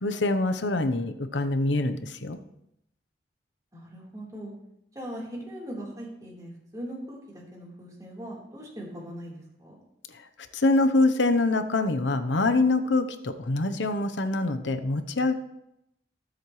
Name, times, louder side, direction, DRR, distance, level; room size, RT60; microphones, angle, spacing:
voice 1, 0.0-2.4 10.6-15.3, left 2 dB, 75° left, 9 dB, 0.9 m, -25 dB
voice 2, 3.7-4.5 4.9-9.8, right 1 dB, 20° right, -4 dB, 3.9 m, -40 dB
20.0 x 7.8 x 3.2 m, 0.81 s
head